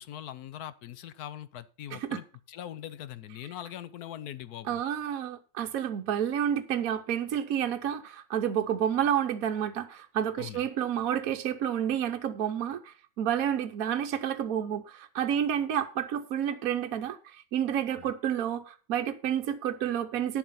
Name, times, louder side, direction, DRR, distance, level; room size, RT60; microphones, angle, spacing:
voice 1, 0.0-4.8 10.4-10.7 17.9-18.1, left 11 dB, 65° left, 1.1 m, -42 dB
voice 2, 4.7-20.4, right 9 dB, 60° right, 1.1 m, -30 dB
10.5 x 7.2 x 5.7 m
omnidirectional pair, 2.0 m